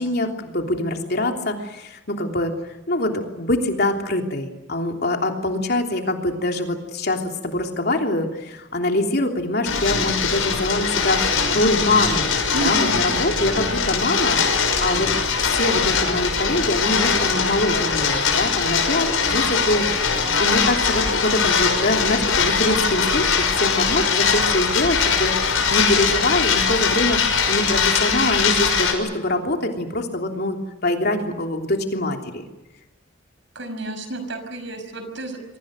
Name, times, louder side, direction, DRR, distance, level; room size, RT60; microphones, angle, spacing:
voice 1, 0.0-2.5 2.9-12.3 12.6-15.1 15.5-19.9 20.4-23.3 23.6-30.6 30.8-32.4, left 1 dB, 50° left, 3 dB, 3.2 m, -24 dB
sound 1, 9.7-28.9, left 5 dB, 80° left, 5.7 m, -21 dB
voice 2, 12.5-13.0 33.5-35.6, right 1 dB, 60° right, 8 dB, 5.7 m, -30 dB
29.0 x 24.0 x 6.6 m, 1.0 s
head